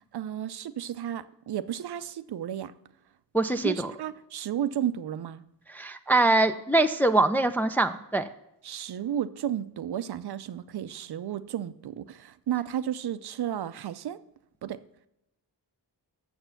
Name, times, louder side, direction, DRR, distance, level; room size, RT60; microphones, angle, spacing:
voice 1, 0.1-2.7 3.6-5.4 8.6-14.2 14.6-14.8, right 10 dB, 65° right, 0.6 m, -33 dB
voice 2, 3.3-3.9 5.7-8.3, right 2 dB, 5° left, 0.4 m, -23 dB
6.9 x 6.6 x 5.7 m
cardioid pair, 70°, 41 cm